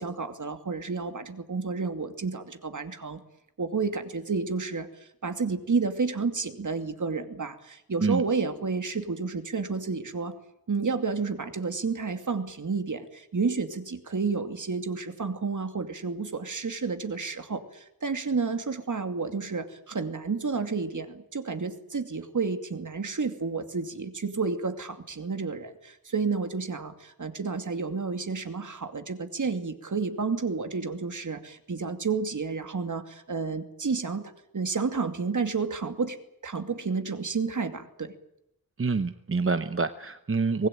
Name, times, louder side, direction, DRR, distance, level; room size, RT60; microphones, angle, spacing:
voice 1, 0.0-3.2 3.6-4.9 5.2-10.3 10.7-36.2 36.4-38.1, right 4 dB, 55° right, 8 dB, 2.6 m, -30 dB
voice 2, 38.8-40.7, right 4 dB, 35° right, 10 dB, 1.0 m, -26 dB
24.5 x 20.0 x 9.2 m, 0.80 s
wide cardioid pair, 120°, 37 cm